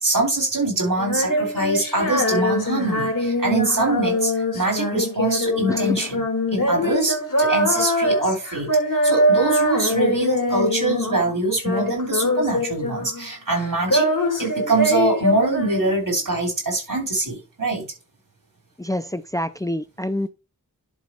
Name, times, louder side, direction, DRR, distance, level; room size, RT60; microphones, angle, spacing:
voice 1, 0.0-8.7 9.0-14.1 14.4-17.9, right 2 dB, 80° right, 3.3 m, -24 dB
Female singing, 1.0-11.3 11.6-13.3 13.5-16.2, left 1 dB, 70° left, 1.9 m, -23 dB
voice 2, 5.7-6.1 18.8-20.3, left 1 dB, 10° left, 0.4 m, -27 dB
11.0 x 4.1 x 4.4 m
wide cardioid pair, 40°, 32 cm